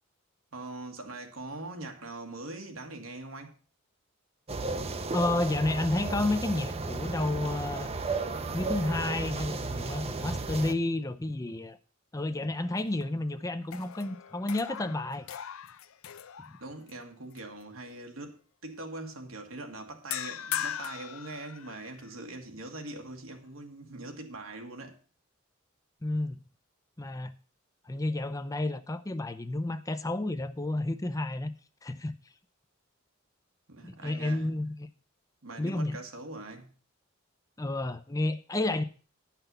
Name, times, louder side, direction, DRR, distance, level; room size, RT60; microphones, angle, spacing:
voice 1, 0.5-3.6 16.6-25.0 33.7-34.5 35.4-36.7, right 2 dB, 85° right, 1.9 m, -42 dB
sound 1, 4.5-10.7, right 3 dB, 30° right, 0.6 m, -34 dB
voice 2, 5.1-7.9 8.5-11.8 12.1-15.3 16.5-16.6 26.0-26.4 27.0-27.4 27.8-31.5 31.8-32.1 33.8-34.9 35.6-36.0 37.6-38.8, left 2 dB, 15° left, 0.5 m, -31 dB
sound 2, 12.6-13.3 13.6-16.9 17.4-17.6 20.1-22.0, left 9 dB, 90° left, 0.6 m, -39 dB
10.5 x 5.9 x 6.8 m
head